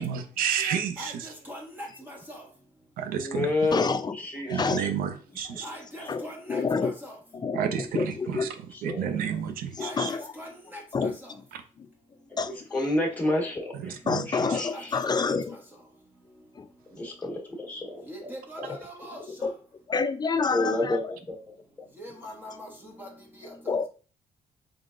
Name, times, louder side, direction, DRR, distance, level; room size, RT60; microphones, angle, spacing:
voice 1, 0.0-1.3 3.0-3.5 4.5-5.7 7.5-8.5 8.8-10.1 13.8-14.6, right 8 dB, 80° right, 0.6 m, -31 dB
voice 2, 1.5-2.4 5.6-7.1 9.8-10.8 18.1-19.2 22.0-22.7 23.0-23.1, equal, 15° right, 1.4 m, -41 dB
voice 3, 3.2-4.9 5.3-5.6 6.0-6.1 8.3-8.4 8.7-9.2 12.3-12.4 12.7-14.0 14.3-15.0 16.9-18.3 18.6-18.7 20.5-21.4, left 2 dB, 10° left, 1.5 m, -30 dB
voice 4, 3.7-4.2 4.5-4.8 6.1-6.9 7.3-8.5 9.8-10.3 10.9-11.4 11.8-11.9 12.4-12.6 14.1-15.6 16.6-16.7 19.4-19.5 19.9-21.0 23.7-23.9, left 5 dB, 30° left, 0.5 m, -28 dB
3.7 x 3.5 x 2.5 m
supercardioid pair, 75°, 15 cm